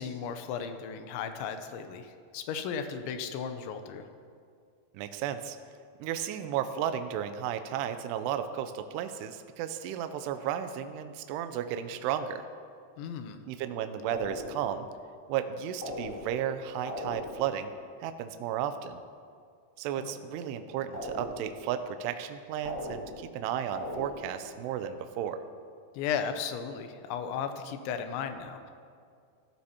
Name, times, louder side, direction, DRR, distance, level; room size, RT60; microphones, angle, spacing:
voice 1, 0.0-4.1 13.0-13.4 20.0-20.2 25.9-28.7, left 7 dB, 85° left, 8 dB, 2.9 m, -35 dB
voice 2, 4.9-5.6 6.0-12.5 13.5-14.9 15.3-17.7 18.0-19.0 19.8-25.4, right 9 dB, 90° right, 9 dB, 2.4 m, -34 dB
sound 1, 14.1-14.8 15.8-16.5 16.9-17.6 20.9-21.7 22.6-23.4 23.7-24.4, left 1 dB, 35° left, 1.7 m, -39 dB
17.0 x 13.0 x 2.9 m, 2.3 s
omnidirectional pair, 5.4 m